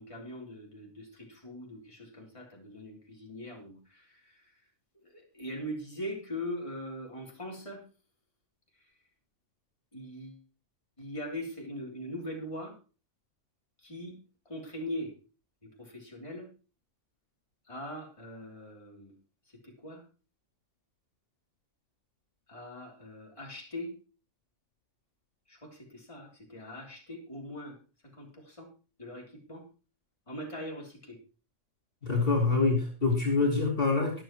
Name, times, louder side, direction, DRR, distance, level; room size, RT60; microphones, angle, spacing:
voice 1, 0.0-4.6 5.0-7.8 8.7-8.9 9.9-10.4 11.0-12.8 13.8-14.2 14.4-15.2 15.6-16.5 17.6-19.2 19.5-20.0 22.5-23.9 25.5-27.8 28.0-28.7 29.0-29.7 30.3-31.2, left 1 dB, 25° left, -1 dB, 3.3 m, -41 dB
voice 2, 32.0-34.2, left 3 dB, 45° left, -1 dB, 2.8 m, -26 dB
23.0 x 7.9 x 3.0 m, 0.34 s
omnidirectional pair, 1.4 m